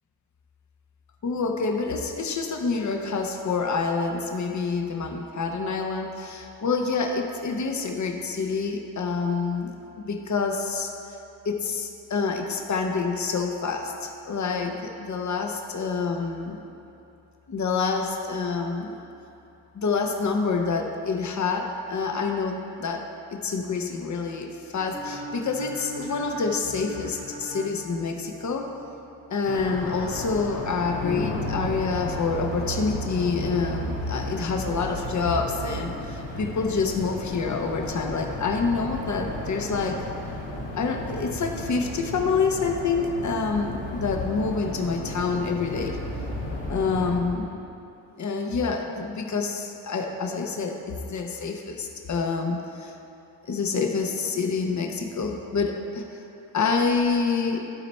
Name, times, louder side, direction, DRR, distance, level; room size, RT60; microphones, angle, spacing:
voice 1, 1.2-9.7 9.9-11.2 11.4-16.6 17.5-19.0 19.7-28.7 29.3-40.1 40.7-46.0 46.7-47.6 48.2-52.9 53.4-56.2 56.5-57.6, left 4 dB, 35° left, 3 dB, 0.9 m, -27 dB
sound 1, 24.7-28.6, right 2 dB, 15° right, 1.3 m, -39 dB
sound 2, 29.4-47.2, left 1 dB, 80° left, 1.6 m, -33 dB
12.0 x 4.1 x 4.3 m, 2.8 s
supercardioid pair, 50°, 48 cm